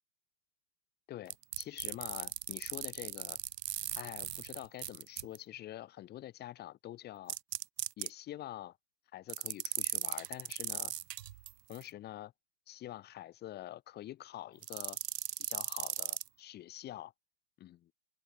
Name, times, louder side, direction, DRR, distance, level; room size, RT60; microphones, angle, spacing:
voice 1, 1.1-3.4 3.9-7.4 8.0-8.8 9.1-10.9 11.7-12.3 12.7-15.0 15.4-17.1 17.6-17.9, left 13 dB, 20° left, 3.3 m, -46 dB
sound 1, 1.3-5.4 7.3-8.1 9.3-11.8 14.6-16.3, right 12 dB, 80° right, 0.7 m, -38 dB
open air
hypercardioid pair, 140°, 47 cm